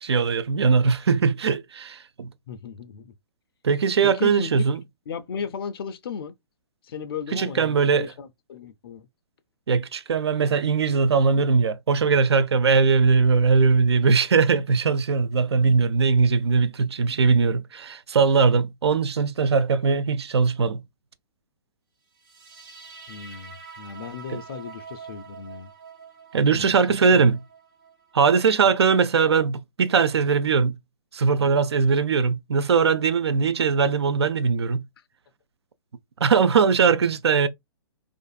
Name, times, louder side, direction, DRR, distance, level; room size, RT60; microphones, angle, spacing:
voice 1, 0.0-2.3 3.6-4.8 7.3-8.1 9.7-20.8 26.3-27.4 28.1-30.8 31.1-34.8 36.2-37.5, right 5 dB, 75° right, 0.4 m, -20 dB
voice 2, 2.5-3.1 4.0-4.5 5.1-6.3 6.8-9.1 23.1-25.7 26.5-27.2, left 6 dB, 60° left, 0.4 m, -36 dB
sound 1, 22.2-29.2, right 6 dB, 50° right, 1.1 m, -46 dB
2.5 x 2.4 x 2.3 m
figure-of-eight pair, 120°, 14 cm